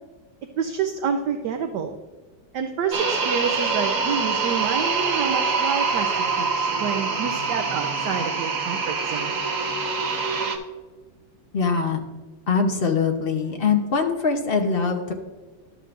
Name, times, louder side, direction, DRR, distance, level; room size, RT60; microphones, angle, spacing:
voice 1, 0.6-2.0 2.5-6.1 6.4-9.4, right 6 dB, 70° right, 6 dB, 1.1 m, -28 dB
sound 1, 2.9-10.6, right 4 dB, 50° right, 1.2 m, -25 dB
voice 2, 11.5-12.0 12.5-15.1, left 5 dB, 55° left, 3 dB, 0.6 m, -22 dB
12.0 x 7.7 x 2.5 m, 1.3 s
omnidirectional pair, 2.2 m